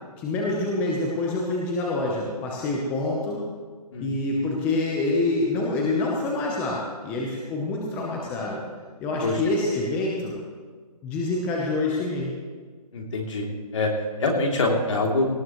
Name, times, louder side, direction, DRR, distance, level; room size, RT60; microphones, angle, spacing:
voice 1, 0.2-3.4 4.0-8.6 9.0-10.3 11.0-12.3, left 2 dB, 10° left, -3 dB, 0.8 m, -26 dB
voice 2, 12.9-13.9 14.2-15.3, left 2 dB, 50° left, 0 dB, 3.0 m, -25 dB
18.5 x 17.0 x 3.1 m, 1.6 s
hypercardioid pair, 165°, 20 cm